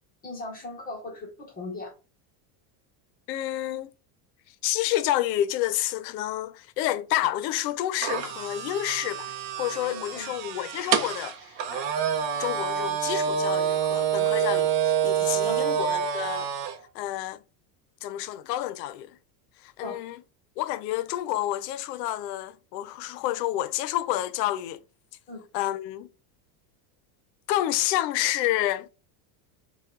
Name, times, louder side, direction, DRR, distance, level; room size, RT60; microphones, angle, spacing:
voice 1, 0.2-1.9 9.8-10.4 15.4-15.6 19.8-20.0 25.3-25.4, left 2 dB, 20° left, 0.9 m, -38 dB
voice 2, 3.3-3.9 4.5-11.9 12.4-16.5 16.9-17.4 18.0-19.2 19.6-20.2 20.6-24.8 25.5-26.1 27.5-28.9, left 14 dB, 80° left, 0.7 m, -29 dB
sound 1, 8.0-16.8, right 8 dB, 55° right, 0.7 m, -27 dB
4.4 x 2.3 x 3.6 m
cardioid pair, 175°, 48 cm